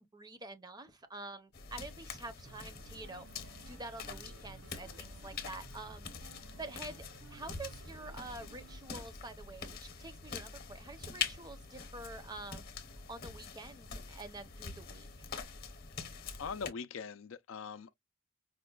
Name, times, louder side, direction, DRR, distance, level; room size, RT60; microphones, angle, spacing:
voice 1, 0.1-12.7 13.1-15.3, right 2 dB, 20° right, 0.6 m, -48 dB
sound 1, 1.5-16.7, left 6 dB, 45° left, 0.8 m, -45 dB
sound 2, 2.4-8.8, right 3 dB, 65° right, 0.5 m, -56 dB
voice 2, 16.4-17.9, left 5 dB, 70° left, 0.4 m, -41 dB
5.1 x 2.2 x 2.2 m
head